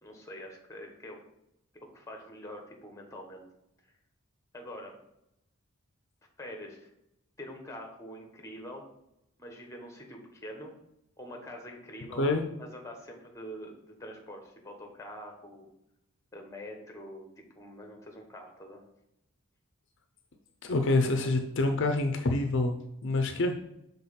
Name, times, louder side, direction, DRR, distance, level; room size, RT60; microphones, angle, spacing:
voice 1, 0.0-1.2 1.9-3.4 4.5-5.0 6.4-6.9 7.4-8.9 9.4-10.7 11.2-12.3 12.6-13.7 14.0-15.7 16.3-18.8, equal, 15° left, 2 dB, 1.1 m, -45 dB
voice 2, 20.6-23.5, left 2 dB, 60° left, 5 dB, 0.6 m, -27 dB
5.8 x 3.6 x 5.7 m, 0.83 s
head